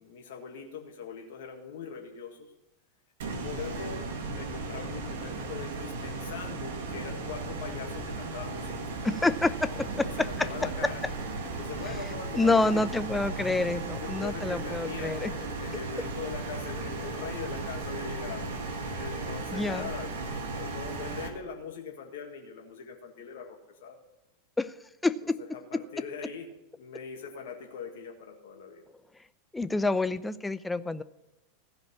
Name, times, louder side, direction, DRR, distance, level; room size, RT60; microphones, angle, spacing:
voice 1, 0.0-2.5 3.4-9.2 9.7-11.0 11.5-12.8 13.8-18.5 18.9-20.1 20.5-24.0 25.2-26.5 26.8-28.8, left 6 dB, 65° left, 2 dB, 1.8 m, -41 dB
sound 1, 3.2-21.3, right 3 dB, 65° right, 1.8 m, -36 dB
voice 2, 9.0-9.7 10.0-10.5 10.8-10.9 12.3-15.3 19.5-19.9 24.6-24.7 25.0-25.4 29.5-31.0, left 2 dB, 10° left, 13 dB, 0.6 m, -27 dB
15.5 x 5.2 x 9.6 m, 0.96 s
hypercardioid pair, 90°, 0 cm